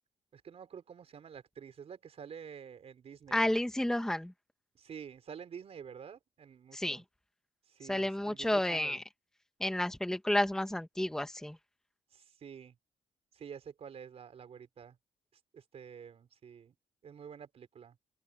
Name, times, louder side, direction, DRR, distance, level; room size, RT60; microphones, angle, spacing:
voice 1, 0.3-3.5 4.7-7.0 7.7-9.0 12.1-12.7 13.3-15.0 15.5-16.7 17.0-18.0, right 7 dB, 55° right, 4.5 m, -49 dB
voice 2, 3.3-4.3 6.7-7.0 7.9-9.0 9.6-11.6, left 1 dB, 5° left, 1.3 m, -31 dB
open air
cardioid pair, 105°, 13 cm